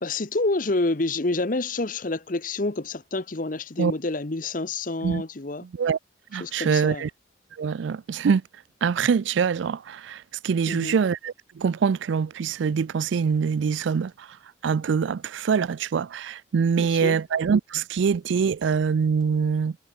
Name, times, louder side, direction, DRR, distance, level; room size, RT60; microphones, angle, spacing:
voice 1, 0.0-5.6 6.4-7.0 10.7-11.0 16.8-17.2, left 2 dB, 45° left, 0.9 m, -28 dB
voice 2, 5.6-6.0 6.3-7.1 7.6-8.4 8.8-14.4 14.6-19.8, right 6 dB, 70° right, 0.4 m, -24 dB
head